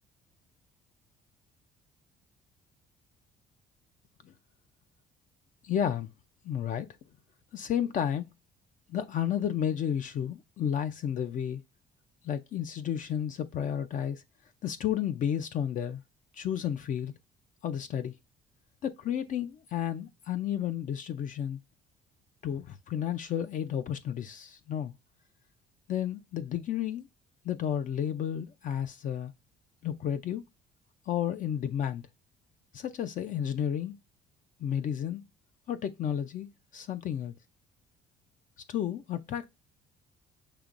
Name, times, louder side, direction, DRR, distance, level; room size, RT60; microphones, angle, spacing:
voice 1, 5.6-6.1 6.4-6.9 7.5-8.3 8.9-11.6 12.2-14.2 14.6-16.0 16.3-17.1 17.6-18.1 18.8-21.6 22.4-24.9 25.9-27.1 27.4-29.3 29.8-30.4 31.1-32.0 32.7-34.0 34.6-35.2 35.7-36.5 36.7-37.3 38.7-39.5, left 9 dB, 50° left, 0.5 m, -32 dB
6.7 x 2.9 x 2.5 m
cardioid pair, 110°, 17 cm